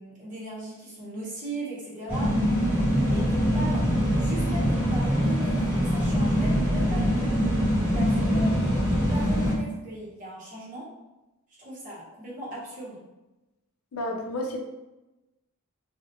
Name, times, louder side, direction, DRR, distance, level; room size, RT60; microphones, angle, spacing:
voice 1, 0.0-2.3 3.1-7.5 7.9-8.6 8.9-10.9 11.6-13.0, right 1 dB, 35° right, -7 dB, 0.8 m, -38 dB
sound 1, 2.1-9.6, equal, 10° right, 0.9 m, -23 dB
voice 2, 13.9-14.6, left 1 dB, 75° left, 2 dB, 0.4 m, -31 dB
2.3 x 2.1 x 2.7 m, 1.0 s
head